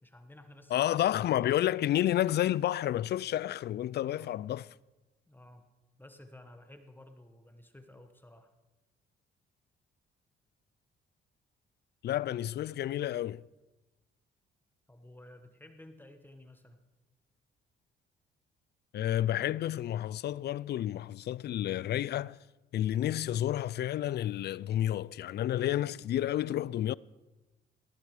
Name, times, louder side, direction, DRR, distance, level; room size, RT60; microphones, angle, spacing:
voice 1, 0.0-0.8 4.1-4.4 5.3-5.7 6.0-8.5 14.9-16.8, left 1 dB, 10° left, 1.4 m, -54 dB
voice 2, 0.7-4.7 12.0-13.4 18.9-22.4 22.7-26.9, left 12 dB, 55° left, 0.4 m, -30 dB
17.5 x 11.5 x 4.9 m
cardioid pair, 90°, 20 cm